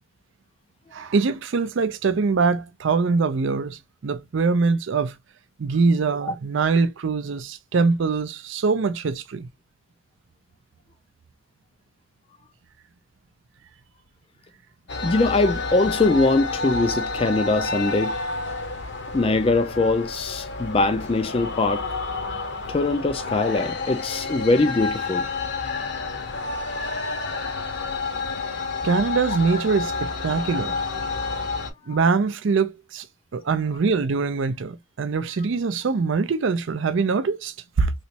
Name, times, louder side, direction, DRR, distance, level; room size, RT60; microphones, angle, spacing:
voice 1, 0.9-5.2 5.6-9.5 28.8-30.8 31.9-33.1 33.3-37.9, right 4 dB, 60° right, 0.4 m, -23 dB
sound 1, 14.9-31.7, left 3 dB, 55° left, 0.8 m, -29 dB
voice 2, 15.0-18.1 19.1-21.9 22.7-25.3, left 3 dB, 25° left, 0.3 m, -22 dB
3.2 x 2.9 x 2.8 m
head